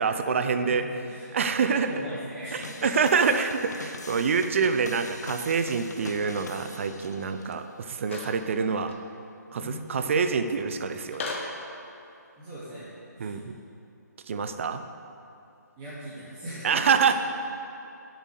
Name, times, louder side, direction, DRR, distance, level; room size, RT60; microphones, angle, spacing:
voice 1, 0.0-0.8 1.3-1.9 2.5-8.9 9.5-11.3 13.2-13.5 14.3-14.8 16.6-17.1, right 5 dB, 45° right, 9 dB, 0.7 m, -26 dB
voice 2, 0.5-3.4 9.5-10.6 12.4-12.9 13.2-13.3 15.8-17.1, right 1 dB, 20° right, -11 dB, 2.4 m, -40 dB
sound 1, 2.6-7.5, left 3 dB, 65° left, 1.1 m, -43 dB
sound 2, 8.0-8.4 8.9-9.0 11.1-11.6, left 3 dB, 40° left, 1.3 m, -35 dB
8.1 x 8.0 x 6.5 m, 2.6 s
figure-of-eight pair, 155°, 10 cm